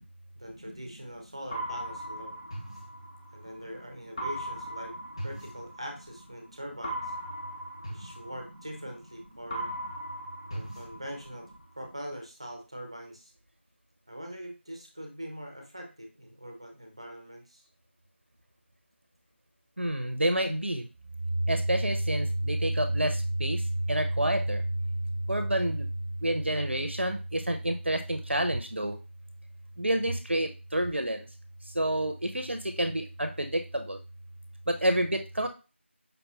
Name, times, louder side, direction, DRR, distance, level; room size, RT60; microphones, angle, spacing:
voice 1, 0.4-2.4 3.3-4.9 5.2-7.1 7.9-9.7 10.5-11.5 11.8-13.3 14.1-17.7, equal, 25° right, 3 dB, 0.7 m, -42 dB
sound 1, 1.5-3.6 4.2-6.2 6.8-9.1 9.5-11.6, right 1 dB, 30° left, 0.9 m, -38 dB
voice 2, 19.8-20.9 21.5-24.6 25.3-25.9 26.2-29.0 29.8-31.2 31.7-34.0 34.7-35.5, right 1 dB, 65° right, 6 dB, 0.6 m, -28 dB
5.2 x 2.9 x 2.4 m, 0.31 s
figure-of-eight pair, 175°, 7 cm